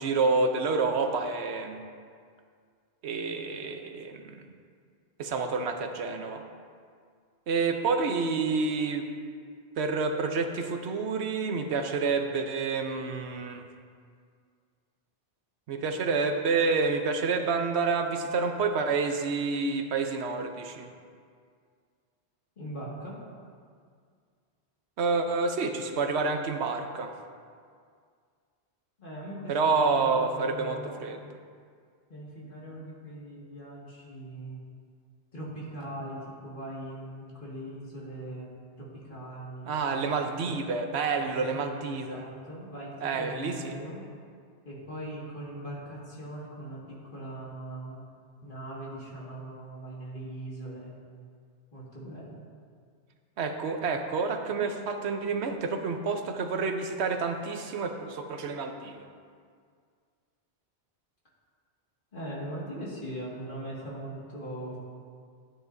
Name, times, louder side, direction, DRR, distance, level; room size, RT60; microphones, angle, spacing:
voice 1, 0.0-1.8 3.0-4.4 5.2-6.4 7.5-9.1 9.8-13.6 15.7-20.9 25.0-27.1 29.5-31.2 39.6-42.2 43.0-43.8 53.4-59.0, right 4 dB, 80° right, 5 dB, 1.0 m, -28 dB
voice 2, 22.6-23.2 29.0-31.0 32.1-34.6 35.3-38.6 39.1-39.8 40.3-40.6 41.1-44.0 44.7-46.8 47.0-48.0 48.4-50.9 51.7-52.4 62.1-64.8, right 1 dB, 50° left, -6 dB, 2.1 m, -40 dB
12.5 x 9.0 x 2.6 m, 2.1 s
omnidirectional pair, 1.1 m